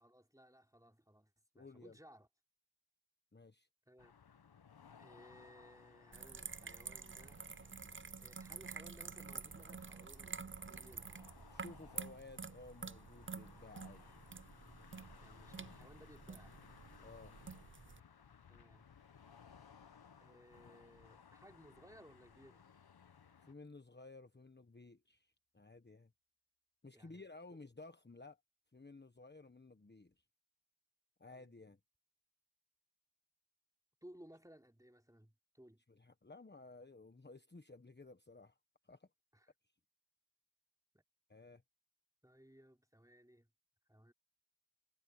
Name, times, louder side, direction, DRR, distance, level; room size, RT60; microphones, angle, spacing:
voice 1, 0.0-2.3 3.9-4.1 5.0-7.5 8.2-11.1 15.2-16.6 18.5-18.9 20.2-22.7 26.9-27.2 31.3-31.6 34.0-35.8 39.3-39.5 40.9-41.0 42.2-43.5 43.9-44.1, equal, 5° right, 3.6 m, -61 dB
voice 2, 1.5-2.0 3.3-3.7 11.5-14.1 17.0-17.4 23.4-26.1 26.8-28.4 28.7-30.2 31.2-31.8 35.9-38.6 38.8-39.1 41.3-41.6, left 3 dB, 20° left, 1.3 m, -56 dB
sound 1, 4.0-23.5, left 7 dB, 50° left, 1.0 m, -62 dB
sound 2, 6.1-18.0, right 5 dB, 25° right, 0.6 m, -49 dB
sound 3, 17.0-24.9, left 4 dB, 70° left, 6.4 m, -84 dB
cardioid pair, 50°, 47 cm